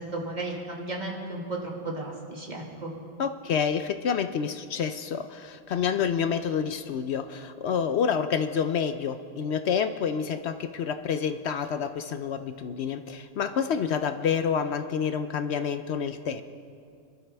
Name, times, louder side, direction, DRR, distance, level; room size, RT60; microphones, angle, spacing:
voice 1, 0.1-2.9, right 2 dB, 30° right, -1 dB, 2.0 m, -34 dB
voice 2, 3.2-16.4, left 7 dB, 65° left, 9 dB, 0.7 m, -28 dB
26.0 x 12.0 x 3.4 m, 2.3 s
omnidirectional pair, 1.5 m